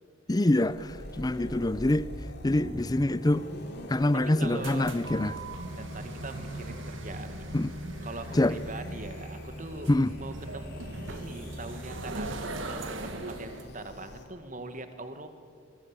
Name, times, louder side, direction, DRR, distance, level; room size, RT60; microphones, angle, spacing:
voice 1, 0.3-0.9 1.2-2.1 2.4-3.5 3.9-5.3 7.5-7.7 8.4-8.6 9.9-10.1, left 1 dB, 20° left, 0.5 m, -25 dB
sound 1, 0.5-14.2, equal, 55° left, 3.1 m, -43 dB
voice 2, 4.4-4.9 5.7-7.5 8.0-10.7 11.1-15.3, right 2 dB, 40° right, 1.9 m, -42 dB
sound 2, 4.4-13.7, right 2 dB, 70° right, 1.9 m, -40 dB
23.0 x 19.5 x 8.4 m
head